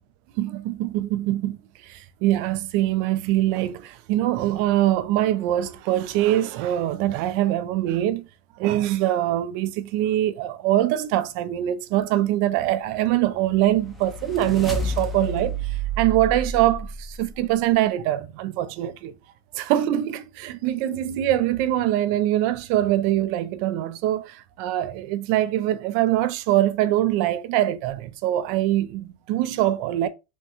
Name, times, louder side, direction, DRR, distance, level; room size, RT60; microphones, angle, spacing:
voice 1, 0.4-1.6 1.8-8.3 8.6-19.1 19.5-30.1, right 13 dB, 55° right, 0.3 m, -23 dB
sound 1, 13.4-17.4, right 2 dB, ahead, 0.6 m, -30 dB
3.5 x 2.1 x 2.8 m
supercardioid pair, 155°, 0 cm